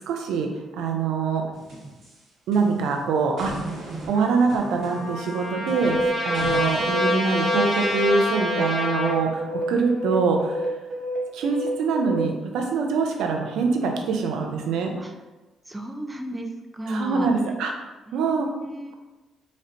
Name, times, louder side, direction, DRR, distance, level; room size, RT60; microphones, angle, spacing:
voice 1, 0.1-1.4 2.5-3.7 4.1-10.7 11.3-14.9 16.9-17.9 18.1-18.5, right 4 dB, 85° right, 3 dB, 0.4 m, -24 dB
sound 1, 1.5-3.0 3.4-6.9, right 3 dB, 65° right, 1.4 m, -38 dB
Trumpet, 4.1-9.2, left 1 dB, 55° left, 1.4 m, -28 dB
sound 2, 5.8-9.1 9.4-12.2, equal, 40° right, 0.8 m, -29 dB
voice 2, 15.7-17.3 18.1-18.9, right 1 dB, 15° right, 4 dB, 0.4 m, -34 dB
4.1 x 2.1 x 2.6 m, 1.1 s
cardioid pair, 90°, 0 cm